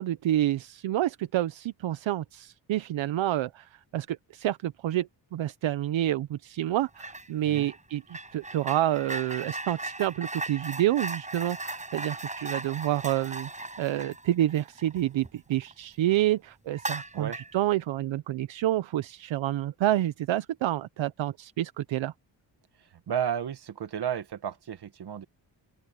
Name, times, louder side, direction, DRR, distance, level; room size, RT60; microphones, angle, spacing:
voice 1, 0.0-13.5 13.8-22.1, right 13 dB, 80° right, 0.8 m, -28 dB
sound 1, 7.0-7.3 7.5-15.7 16.1-16.2 16.7-17.6, right 2 dB, 15° right, 6.7 m, -37 dB
voice 2, 23.1-25.2, right 9 dB, 60° right, 1.8 m, -32 dB
open air
wide cardioid pair, 140°, 46 cm